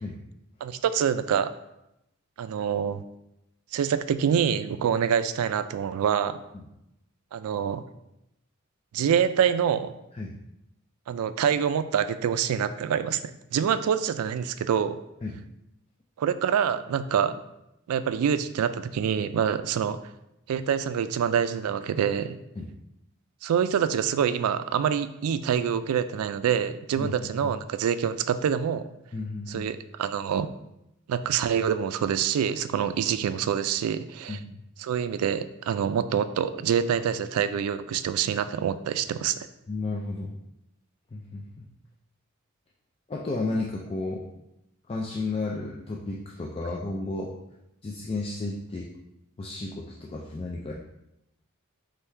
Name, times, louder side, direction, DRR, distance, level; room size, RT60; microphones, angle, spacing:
voice 1, 0.6-1.5 2.4-3.0 3.7-6.4 7.3-7.8 8.9-9.9 11.1-15.0 16.2-17.4 17.9-20.0 20.5-22.4 23.4-28.9 29.5-30.5 31.1-34.4 34.8-39.5, right 8 dB, 85° right, 15 dB, 0.3 m, -26 dB
voice 2, 27.0-27.5 29.1-29.7 34.3-34.6 39.7-40.3 41.1-41.7 43.1-44.2 44.9-47.3 47.8-48.9 49.4-50.7, left 2 dB, 25° left, -2 dB, 0.3 m, -33 dB
3.6 x 3.4 x 4.3 m, 0.87 s
head